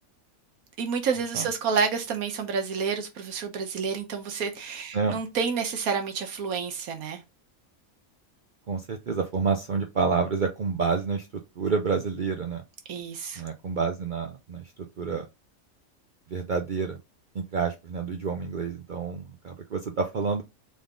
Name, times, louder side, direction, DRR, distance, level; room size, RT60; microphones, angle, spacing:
voice 1, 0.8-7.2 12.9-13.4, right 5 dB, 85° right, 1.4 m, -29 dB
voice 2, 8.7-11.3 11.6-12.6 13.4-14.6 15.0-15.2 16.3-17.0 17.3-20.4, right 5 dB, 60° right, 0.5 m, -28 dB
3.7 x 3.5 x 3.6 m
omnidirectional pair, 1.5 m